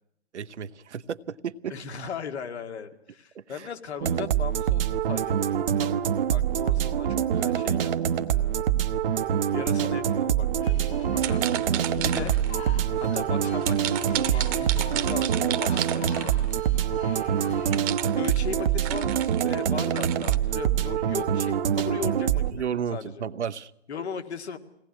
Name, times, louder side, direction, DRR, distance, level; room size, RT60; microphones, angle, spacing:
voice 1, 0.3-1.7 3.3-3.7 22.5-23.7, right 7 dB, 75° right, 11 dB, 0.9 m, -33 dB
voice 2, 1.7-6.0 6.3-8.7 9.5-12.3 13.0-16.4 18.2-22.6 22.9-23.2 23.9-24.6, left 6 dB, 65° left, 6 dB, 2.3 m, -38 dB
sound 1, 4.0-22.5, right 9 dB, 50° right, 1.0 m, -25 dB
sound 2, 10.6-17.8, left 6 dB, 20° left, 1.0 m, -41 dB
sound 3, 11.2-12.5 13.6-16.6 17.7-20.4, right 13 dB, 30° right, 1.2 m, -33 dB
22.0 x 18.0 x 9.8 m, 0.83 s
hypercardioid pair, 135°, 35 cm